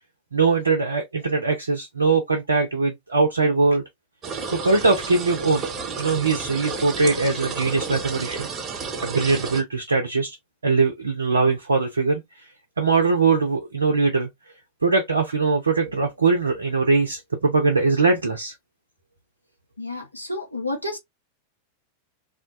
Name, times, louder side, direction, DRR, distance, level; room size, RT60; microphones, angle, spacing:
voice 1, 0.3-3.8 4.5-5.7 6.0-8.5 9.0-10.4 10.6-12.5 12.8-14.3 14.8-18.5, right 4 dB, 75° right, 0.5 m, -21 dB
sound 1, 4.2-9.6, right 5 dB, 30° right, 0.5 m, -31 dB
voice 2, 19.8-21.0, left 2 dB, 85° left, 0.7 m, -30 dB
2.4 x 2.2 x 2.4 m
figure-of-eight pair, 90°, 0 cm